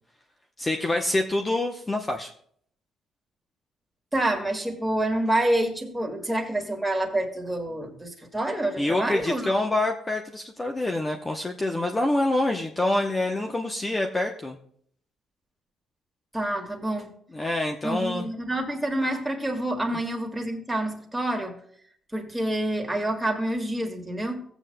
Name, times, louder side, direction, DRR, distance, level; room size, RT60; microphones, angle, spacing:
voice 1, 0.6-2.3 8.8-14.6 17.3-18.3, left 2 dB, 20° left, 3 dB, 0.8 m, -26 dB
voice 2, 4.1-9.5 16.3-17.1 17.8-21.5 22.1-24.4, right 1 dB, 5° right, 2 dB, 1.9 m, -27 dB
15.5 x 8.1 x 2.2 m, 0.63 s
cardioid pair, 90°, 0 cm